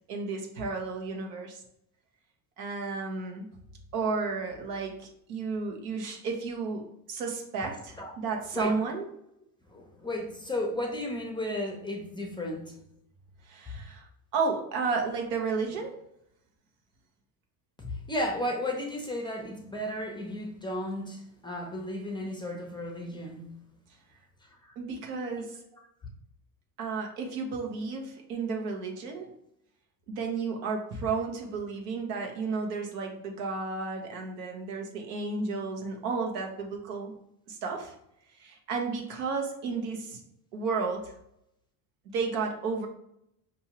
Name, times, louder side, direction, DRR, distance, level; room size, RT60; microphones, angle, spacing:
voice 1, 0.0-1.6 2.6-3.5 3.9-9.1 13.5-14.1 14.3-16.0 24.8-25.5 26.8-29.3 30.1-37.1 37.5-37.9 38.4-40.2 40.5-41.1 42.1-42.9, right 4 dB, 85° right, 2 dB, 1.1 m, -32 dB
voice 2, 9.7-12.7 17.8-23.4 24.6-24.7 25.2-25.3, left 1 dB, 10° left, 1 dB, 0.6 m, -34 dB
4.7 x 2.7 x 2.9 m, 0.76 s
supercardioid pair, 100°, 47 cm